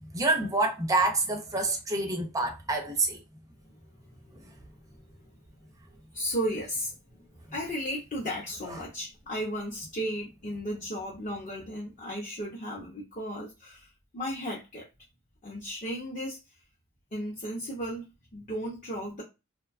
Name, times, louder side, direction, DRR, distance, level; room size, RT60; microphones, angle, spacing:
voice 1, 0.0-3.2, right 2 dB, 15° right, 0.5 m, -27 dB
voice 2, 3.7-4.6 4.9-5.3 5.9-6.9 7.5-14.9 15.4-16.4 17.1-18.0 18.3-19.2, equal, 30° left, 0.6 m, -35 dB
2.6 x 2.2 x 2.4 m
head